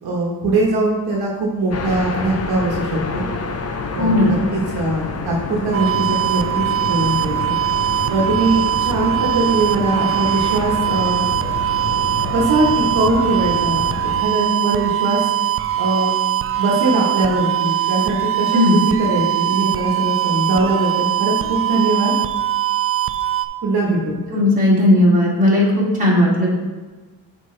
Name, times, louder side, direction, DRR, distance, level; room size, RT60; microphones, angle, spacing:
voice 1, 0.0-3.2 3.9-7.6 8.1-11.2 12.3-15.3 15.8-16.1 16.6-22.1 23.6-24.1, right 2 dB, 60° right, -2 dB, 1.3 m, -21 dB
sound 1, 1.7-14.2, left 4 dB, 35° left, 0.6 m, -28 dB
voice 2, 4.0-4.4 18.5-18.8 24.3-26.5, left 1 dB, 20° right, -6 dB, 2.3 m, -15 dB
sound 2, 5.7-23.5, right 12 dB, 35° right, 0.4 m, -21 dB
9.4 x 5.0 x 3.3 m, 1.3 s
cardioid pair, 125°, 42 cm